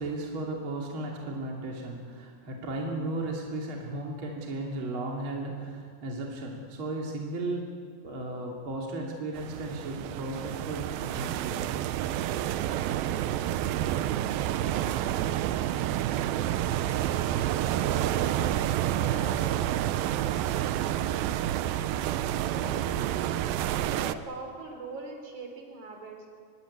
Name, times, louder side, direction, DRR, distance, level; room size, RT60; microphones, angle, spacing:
voice 1, 0.0-7.8 8.0-11.6, right 2 dB, 35° right, -1 dB, 3.3 m, -35 dB
sound 1, 9.4-24.1, right 12 dB, 80° right, 2.5 m, -29 dB
voice 2, 17.7-19.4 22.5-26.2, right 3 dB, 55° right, 3 dB, 5.0 m, -42 dB
24.5 x 21.5 x 8.6 m, 2.2 s
omnidirectional pair, 4.2 m